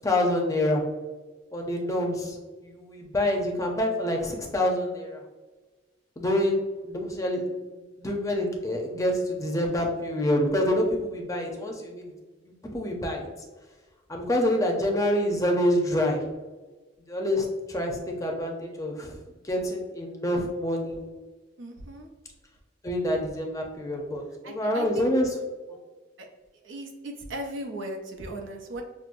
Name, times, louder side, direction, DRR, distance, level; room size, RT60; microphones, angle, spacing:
voice 1, 0.0-0.8 1.5-5.2 6.2-7.4 8.0-12.1 12.7-13.3 14.1-16.2 17.1-19.2 19.4-21.0 22.8-25.3 25.7-25.8, left 1 dB, 20° left, 1 dB, 0.5 m, -27 dB
voice 2, 21.6-22.1 24.4-25.4 26.6-28.8, right 1 dB, 80° right, 3 dB, 0.6 m, -37 dB
6.0 x 2.0 x 2.5 m, 1.3 s
head